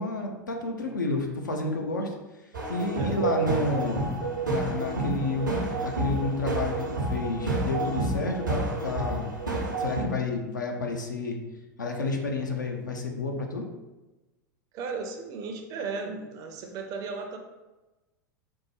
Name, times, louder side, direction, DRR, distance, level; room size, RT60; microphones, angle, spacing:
voice 1, 0.0-4.0 4.5-9.3 9.8-11.4 11.8-13.6, left 3 dB, 75° left, 2 dB, 0.5 m, -30 dB
sound 1, 2.5-10.0, right 2 dB, 80° right, 0.7 m, -29 dB
voice 2, 14.7-17.4, right 4 dB, 35° right, 4 dB, 0.4 m, -35 dB
3.4 x 2.0 x 3.1 m, 1.1 s
figure-of-eight pair, 85°, 10 cm